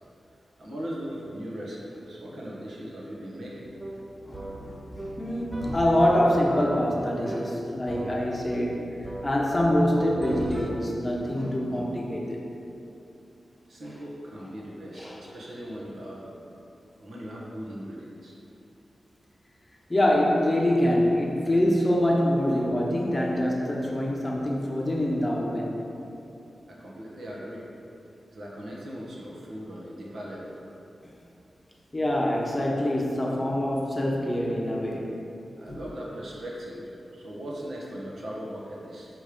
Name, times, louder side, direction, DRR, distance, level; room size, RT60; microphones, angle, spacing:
voice 1, 0.6-3.7 13.7-16.4 17.0-18.3 26.7-27.6 28.3-30.6 35.6-39.1, equal, 70° right, -4 dB, 1.2 m, -39 dB
sound 1, 3.7-10.7, right 1 dB, 20° right, 0.6 m, -38 dB
voice 2, 4.3-8.8 9.2-12.4 15.0-15.2 19.9-25.7 31.9-35.1 35.7-35.8, left 1 dB, 20° left, -2 dB, 0.8 m, -25 dB
6.6 x 3.2 x 5.0 m, 2.8 s
wide cardioid pair, 115°, 0 cm